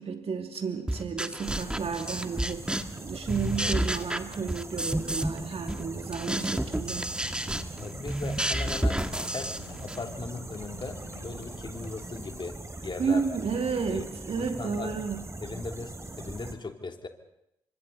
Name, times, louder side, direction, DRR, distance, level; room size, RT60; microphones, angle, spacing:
voice 1, 0.0-2.7 3.0-7.4 13.0-15.3, right 5 dB, 50° right, 5 dB, 2.6 m, -32 dB
sound 1, 0.9-3.0 3.3-5.4 5.7-10.0, right 1 dB, 5° right, 1.8 m, -30 dB
Machine Room Heavy Air Vents, 1.4-16.5, right 2 dB, 20° right, 3.3 m, -41 dB
Run, 6.7-12.5, left 6 dB, 90° left, 3.2 m, -51 dB
voice 2, 7.8-9.0 9.3-9.5 9.8-12.6 12.8-13.2 13.9-14.0 14.4-14.9 15.4-17.1, left 3 dB, 35° left, 4 dB, 3.2 m, -38 dB
29.5 x 25.5 x 4.2 m, 0.81 s
hypercardioid pair, 45°, 13 cm